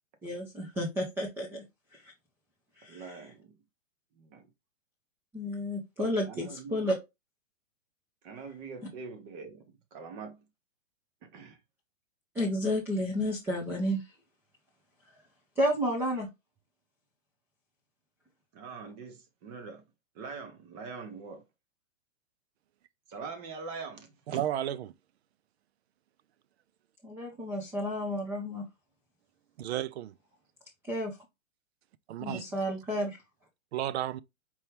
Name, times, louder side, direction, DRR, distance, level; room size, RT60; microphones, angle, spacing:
voice 1, 0.2-1.6 1.9-2.0 2.8-3.2 5.3-6.9 12.3-14.0 15.6-16.3 27.0-28.6 30.9-31.2 32.2-33.2, equal, 5° right, 0.5 m, -31 dB
voice 2, 2.9-3.5 4.2-4.5 6.2-6.8 8.2-10.4 11.2-11.6 18.5-19.8 20.1-21.4 23.1-24.4, right 5 dB, 30° right, 1.1 m, -43 dB
voice 3, 24.3-24.9 29.6-30.1 32.1-32.5 33.7-34.2, right 11 dB, 55° right, 0.5 m, -32 dB
4.6 x 2.8 x 3.4 m
hypercardioid pair, 145°, 40 cm